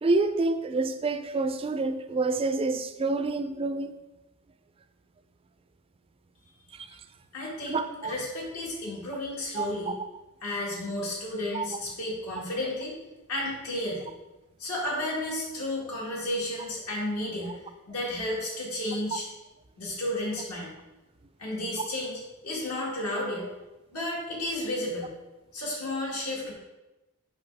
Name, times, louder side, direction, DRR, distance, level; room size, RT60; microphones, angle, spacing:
voice 1, 0.0-3.9 7.7-8.1 9.6-9.7 11.5-11.6, right 3 dB, 25° right, 10 dB, 0.3 m, -27 dB
voice 2, 7.3-10.0 10.4-12.9 13.3-14.1 14.6-17.6 17.9-19.3 19.8-20.7 21.4-23.5 23.9-25.1 25.5-26.5, left 1 dB, 75° left, -4 dB, 2.0 m, -32 dB
5.8 x 5.3 x 3.4 m, 1.0 s
head